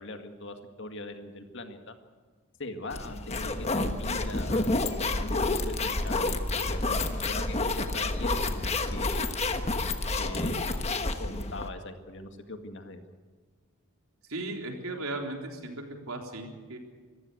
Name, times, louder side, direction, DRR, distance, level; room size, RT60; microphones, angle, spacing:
voice 1, 0.0-1.9 2.6-9.3 10.2-10.7 11.2-13.0, left 2 dB, 55° left, 6 dB, 2.1 m, -41 dB
sound 1, 2.9-11.7, left 2 dB, 30° left, 1.3 m, -29 dB
voice 2, 14.3-16.8, right 2 dB, 80° right, 2 dB, 3.7 m, -36 dB
25.0 x 15.0 x 8.1 m, 1.4 s
head